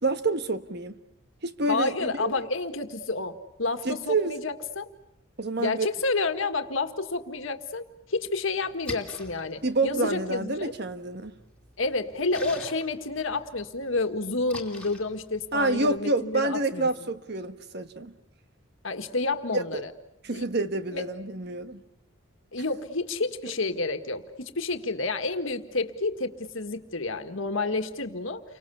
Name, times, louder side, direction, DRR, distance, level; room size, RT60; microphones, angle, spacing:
voice 1, 0.0-1.0 1.4-2.3 3.8-4.3 5.4-5.9 9.6-11.3 15.5-18.1 19.5-19.8 20.2-21.8, right 2 dB, 50° right, 1.3 m, -28 dB
voice 2, 1.7-4.9 5.6-7.8 8.1-10.7 11.8-16.9 18.8-19.9 20.3-20.5 20.9-21.1 22.5-28.4, left 3 dB, 70° left, 1.7 m, -30 dB
Splash splatter, 8.6-16.0, left 2 dB, 5° left, 2.8 m, -46 dB
30.0 x 24.5 x 6.9 m
head